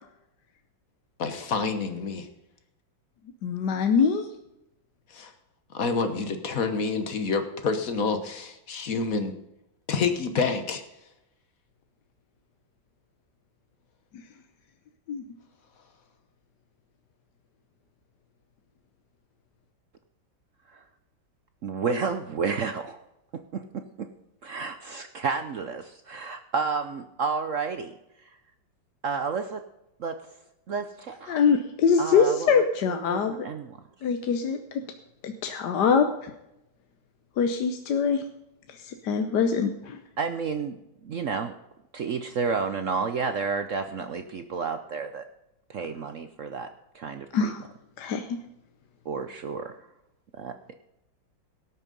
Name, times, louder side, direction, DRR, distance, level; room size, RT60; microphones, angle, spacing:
voice 1, 1.2-2.3 5.1-5.3 5.7-9.3 9.9-10.8, left 4 dB, 50° left, 8 dB, 1.4 m, -28 dB
voice 2, 3.4-4.3 15.1-15.2 31.3-33.4 34.0-34.8 35.2-36.3 37.4-38.2 38.8-40.0 47.3-47.6 48.0-48.4, left 6 dB, 65° left, 7 dB, 1.4 m, -24 dB
voice 3, 21.6-23.0 23.5-23.6 24.0-24.1 24.4-27.9 28.2-28.3 29.0-29.6 30.0-30.2 30.7-31.4 32.0-33.8 40.2-41.5 41.9-45.2 45.7-46.7 46.9-47.5 49.0-49.9 50.4-50.7, right 5 dB, 60° right, 8 dB, 0.8 m, -31 dB
17.5 x 6.5 x 5.3 m, 0.88 s
omnidirectional pair, 2.1 m